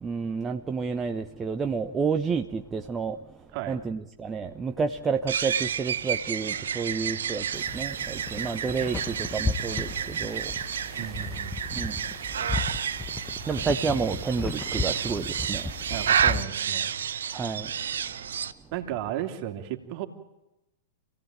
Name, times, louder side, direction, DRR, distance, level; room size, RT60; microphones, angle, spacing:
voice 1, 0.0-3.2 3.7-10.5 11.8-12.0 13.5-15.6 17.3-17.7, right 5 dB, 15° right, 1.0 m, -30 dB
sound 1, 5.3-18.5, right 8 dB, 65° right, 0.9 m, -30 dB
sound 2, 7.5-16.4, left 4 dB, 15° left, 1.4 m, -35 dB
voice 2, 11.0-11.6 15.9-16.9 18.7-20.1, right 12 dB, 40° right, 2.8 m, -34 dB
28.0 x 17.0 x 9.0 m
figure-of-eight pair, 100°, 0 cm